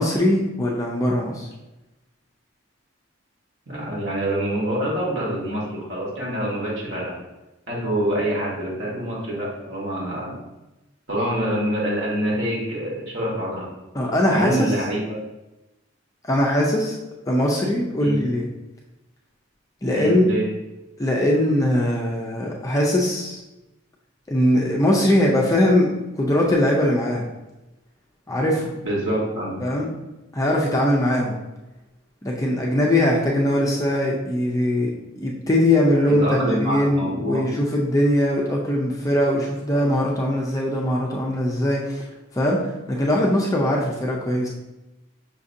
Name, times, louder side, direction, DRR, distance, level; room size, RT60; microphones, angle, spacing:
voice 1, 0.0-1.5 13.9-14.7 16.2-17.0 17.3-18.4 19.8-20.3 21.0-23.4 24.3-25.9 26.2-27.3 28.3-28.7 29.6-29.9 30.3-31.4 32.2-34.9 35.2-42.0 42.3-44.5, left 1 dB, 15° left, -2 dB, 0.4 m, -21 dB
voice 2, 3.7-7.2 7.7-10.3 11.1-13.7 14.3-15.2 18.0-18.2 19.9-20.4 28.8-29.6 36.2-37.5, right 1 dB, 60° right, -4 dB, 1.2 m, -26 dB
5.7 x 2.6 x 2.5 m, 1.0 s
head